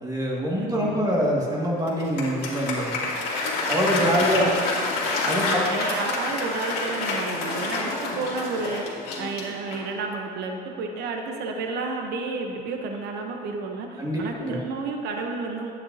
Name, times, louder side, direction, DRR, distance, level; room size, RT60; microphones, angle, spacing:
voice 1, 0.0-3.0 3.7-4.7 5.2-5.9 14.0-14.6, equal, 20° right, -4 dB, 2.0 m, -25 dB
voice 2, 0.5-1.1 3.0-3.1 3.8-4.6 5.4-15.7, right 4 dB, 65° right, 3 dB, 0.9 m, -32 dB
Applause, 1.9-10.0, left 3 dB, 60° left, 2.3 m, -28 dB
10.5 x 9.0 x 2.8 m, 2.5 s
cardioid pair, 115°, 18 cm